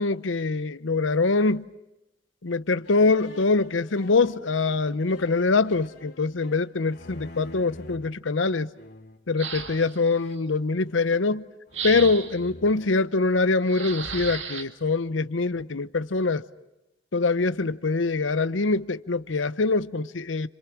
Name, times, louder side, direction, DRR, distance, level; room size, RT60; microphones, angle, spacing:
voice 1, 0.0-1.6 2.4-8.7 9.3-11.4 11.8-16.4 17.1-20.5, left 3 dB, 85° left, 0.8 m, -24 dB
sound 1, 2.8-8.1 8.7-9.3 9.9-11.4 11.7-13.7, left 1 dB, 60° left, 2.8 m, -47 dB
sound 2, 9.4-10.1 11.7-12.5 13.7-14.6, right 6 dB, 75° right, 2.1 m, -34 dB
30.0 x 27.0 x 6.0 m
head